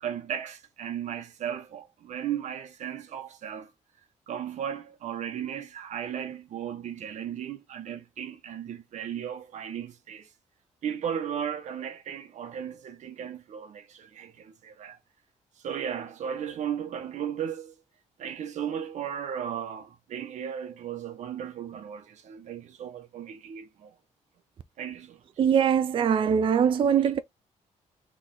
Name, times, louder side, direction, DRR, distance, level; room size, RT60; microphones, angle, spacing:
voice 1, 0.0-3.7 4.3-10.3 10.8-15.0 15.6-17.8 18.2-23.9 24.8-25.2, right 9 dB, 70° right, 0.9 m, -35 dB
voice 2, 25.4-27.2, right 8 dB, 45° right, 0.4 m, -22 dB
4.1 x 3.1 x 3.8 m
cardioid pair, 135°, 13 cm